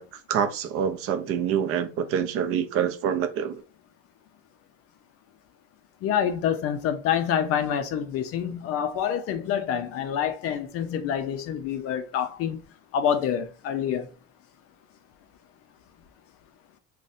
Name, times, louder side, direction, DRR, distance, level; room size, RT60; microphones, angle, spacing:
voice 1, 0.0-3.6, right 8 dB, 45° right, 0.4 m, -26 dB
voice 2, 6.0-12.6 12.9-14.1, left 8 dB, 45° left, 0.4 m, -27 dB
3.8 x 2.2 x 2.5 m
cardioid pair, 140°, 34 cm